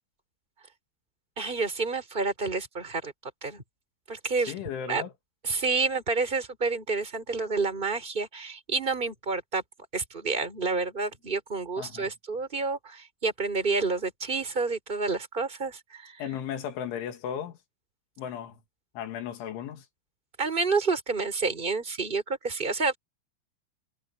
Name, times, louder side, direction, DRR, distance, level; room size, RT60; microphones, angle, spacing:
voice 1, 1.4-3.1 3.4-3.6 4.1-4.5 4.9-5.0 5.4-9.6 9.9-16.2 20.4-23.0, right 4 dB, 10° right, 4.6 m, -29 dB
voice 2, 4.5-5.1 11.8-12.1 16.2-17.6 18.2-18.6 18.9-19.9, left 9 dB, 80° left, 4.7 m, -35 dB
omnidirectional pair, 5.4 m